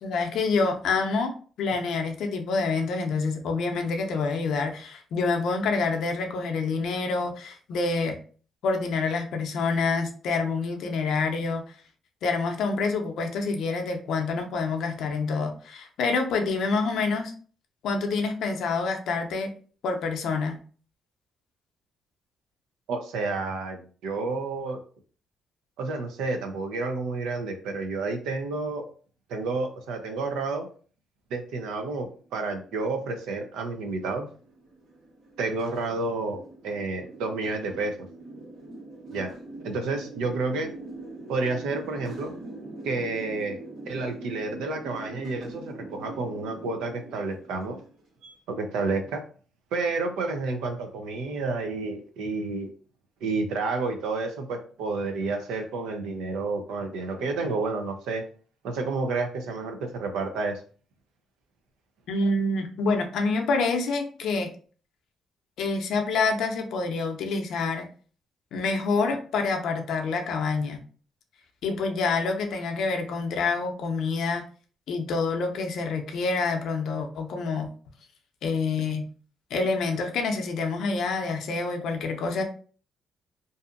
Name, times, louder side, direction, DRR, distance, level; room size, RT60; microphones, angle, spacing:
voice 1, 0.0-8.1 8.6-11.6 12.2-17.3 17.8-19.5 19.8-20.6 62.1-64.5 65.6-67.8 68.5-70.8 71.6-74.4 74.9-77.7 78.4-79.0 79.5-82.4, left 4 dB, 75° left, 3 dB, 0.5 m, -27 dB
voice 2, 22.9-24.8 25.8-28.8 29.3-30.7 31.3-34.3 35.4-37.9 39.1-39.3 39.6-40.7 41.3-42.3 42.8-43.6 43.9-47.8 48.5-49.2 49.7-52.7 53.2-58.2 58.6-60.6, right 3 dB, 90° right, 5 dB, 0.5 m, -30 dB
sound 1, 32.2-48.3, right 2 dB, 75° right, 1.2 m, -43 dB
2.6 x 2.4 x 2.5 m, 0.42 s
cardioid pair, 90°, 0 cm